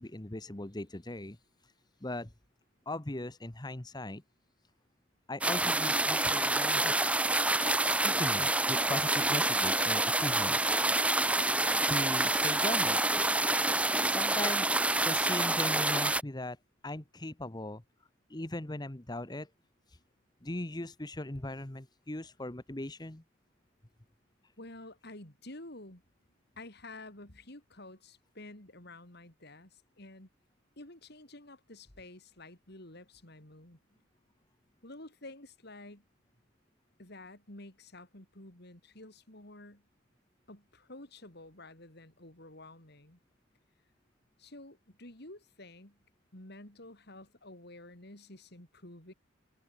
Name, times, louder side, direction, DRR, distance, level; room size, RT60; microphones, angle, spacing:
voice 1, 0.0-1.4 1.6-1.7 2.0-2.3 2.9-4.2 5.3-7.2 7.9-10.7 11.9-13.0 14.1-14.7 15.0-16.6 16.8-17.8 18.3-19.5 19.9-20.0 20.4-23.2, left 1 dB, 20° left, 1.2 m, -39 dB
sound 1, 5.4-16.2, right 2 dB, 5° right, 0.8 m, -27 dB
voice 2, 24.6-26.0 26.5-30.3 30.8-33.8 34.8-36.0 37.0-39.9 40.5-43.2 44.4-46.0 46.3-49.1, left 2 dB, 55° left, 4.8 m, -50 dB
open air
head